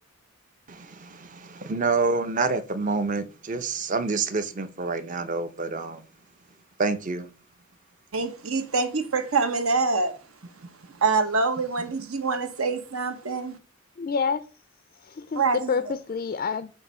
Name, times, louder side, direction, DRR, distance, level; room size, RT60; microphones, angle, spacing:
voice 1, 0.7-6.1 6.8-7.3, right 4 dB, 35° right, 0.6 m, -27 dB
voice 2, 8.1-10.2 11.0-13.6 15.3-15.9, right 4 dB, 75° right, 1.0 m, -25 dB
voice 3, 14.0-14.5 15.0-16.7, left 5 dB, 40° left, 0.3 m, -28 dB
7.8 x 2.7 x 5.4 m
head